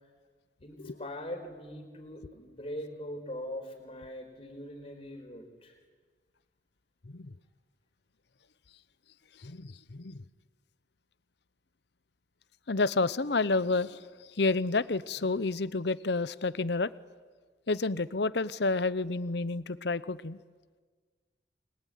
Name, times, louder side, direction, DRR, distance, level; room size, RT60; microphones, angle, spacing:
voice 1, 0.6-5.8, left 1 dB, 30° left, 3 dB, 4.5 m, -41 dB
voice 2, 9.4-10.2 12.7-14.0 14.4-16.9 17.7-20.4, left 3 dB, 65° left, 16 dB, 0.8 m, -29 dB
29.5 x 21.5 x 9.3 m, 1.5 s
head